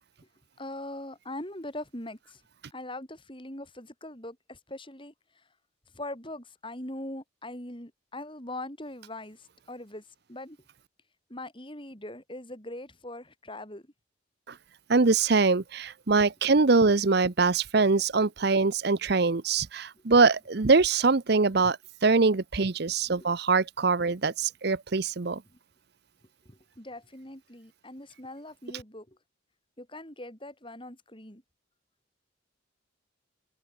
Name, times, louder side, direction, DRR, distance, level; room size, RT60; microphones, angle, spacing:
voice 1, 0.6-2.4 2.7-5.5 5.9-10.6 11.3-13.9 19.9-20.3 23.0-23.3 25.5-25.6 26.4-29.2 29.8-31.4, left 1 dB, 25° left, 6.2 m, -41 dB
voice 2, 14.9-25.4, right 4 dB, 55° right, 0.8 m, -23 dB
head